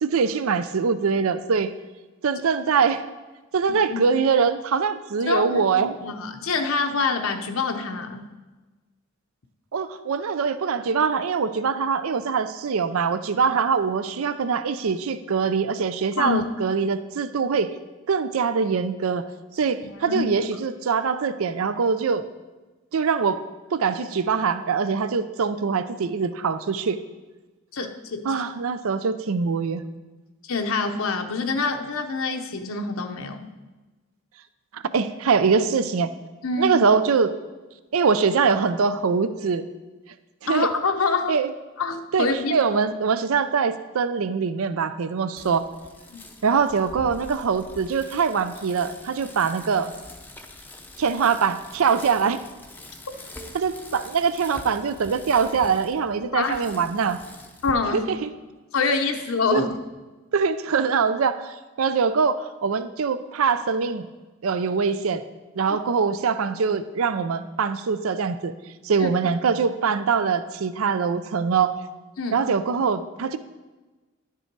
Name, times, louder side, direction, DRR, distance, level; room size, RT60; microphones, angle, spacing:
voice 1, 0.0-1.7 2.2-3.0 3.5-6.0 9.7-17.7 18.1-19.3 19.5-22.3 22.9-23.4 23.7-27.0 28.2-29.8 34.7-36.1 36.6-37.3 37.9-39.7 40.4-40.7 41.3-41.5 42.1-45.7 46.4-49.9 51.0-52.4 53.5-57.2 57.9-58.3 59.5-59.7 60.3-64.0 64.4-65.2 65.6-68.5 68.8-71.8 72.3-73.4, right 5 dB, 70° right, 12 dB, 0.5 m, -23 dB
voice 2, 5.3-5.7 6.0-8.3 16.2-16.5 19.8-20.3 27.7-28.4 30.4-33.5 36.4-36.8 40.5-41.3 41.8-42.6 46.1-46.2 56.3-56.6 57.6-58.1 58.7-59.7 69.0-69.1 72.2-72.4, left 4 dB, 65° left, 5 dB, 0.7 m, -26 dB
Bicycle, 45.4-57.7, left 1 dB, 10° left, 0.6 m, -44 dB
11.0 x 6.8 x 4.6 m, 1.2 s
head